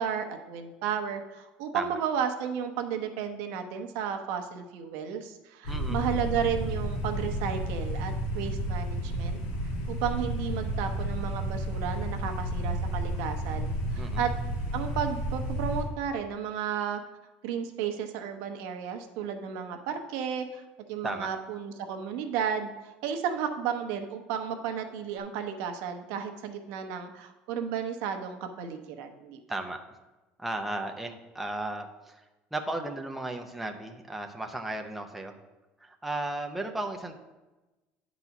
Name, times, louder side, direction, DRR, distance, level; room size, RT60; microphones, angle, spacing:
voice 1, 0.0-9.4 9.9-14.3 14.7-17.0 17.4-20.6 20.9-22.7 23.0-29.4, right 7 dB, 80° right, 5 dB, 0.9 m, -33 dB
sound 1, 5.6-15.8, right 1 dB, 90° left, 2.2 m, -31 dB
voice 2, 5.7-6.0 14.0-14.2 21.0-21.3 29.5-29.8 30.4-32.2 32.5-35.3 35.8-37.2, right 2 dB, 5° right, 3 dB, 0.6 m, -35 dB
9.6 x 4.1 x 5.8 m, 1.1 s
cardioid pair, 150°, 4 cm